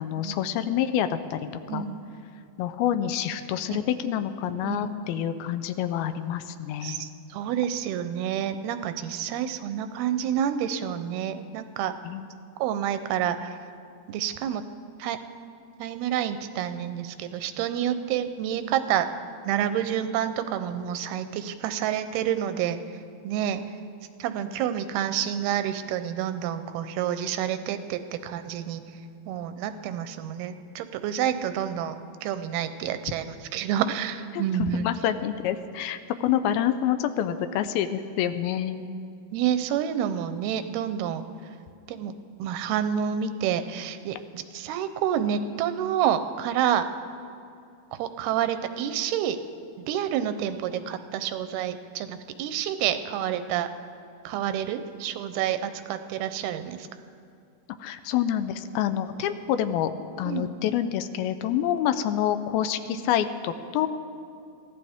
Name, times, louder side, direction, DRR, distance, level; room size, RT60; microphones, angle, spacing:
voice 1, 0.0-1.4 1.7-1.9 2.6-7.1 12.0-12.2 34.3-38.9 57.8-59.9 60.2-63.9, left 10 dB, 85° left, 10 dB, 2.5 m, -27 dB
voice 2, 6.8-11.9 12.6-13.6 14.1-14.6 15.0-15.2 15.8-19.1 19.5-23.6 24.2-28.8 29.3-34.9 39.3-41.2 41.9-42.1 42.4-46.8 47.9-49.4 49.9-53.7 54.2-56.9 60.2-60.5, right 9 dB, 90° right, 10 dB, 2.7 m, -28 dB
23.5 x 16.0 x 3.6 m, 2.4 s
omnidirectional pair, 4.4 m